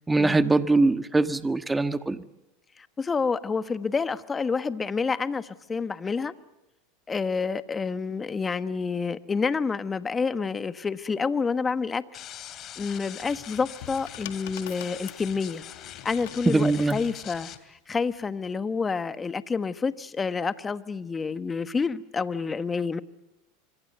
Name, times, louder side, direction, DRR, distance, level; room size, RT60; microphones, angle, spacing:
voice 1, 0.1-2.2 16.5-17.0, right 3 dB, 10° right, 11 dB, 1.4 m, -22 dB
voice 2, 2.8-6.3 7.1-12.0 12.8-15.6 16.0-23.0, left 5 dB, 20° left, 12 dB, 1.3 m, -28 dB
sound 1, 12.1-17.6, left 11 dB, 45° left, 2.6 m, -43 dB
sound 2, 13.4-17.1 18.1-18.5, left 14 dB, 75° left, 1.8 m, -45 dB
25.5 x 25.0 x 8.0 m, 0.90 s
hypercardioid pair, 100°, 0 cm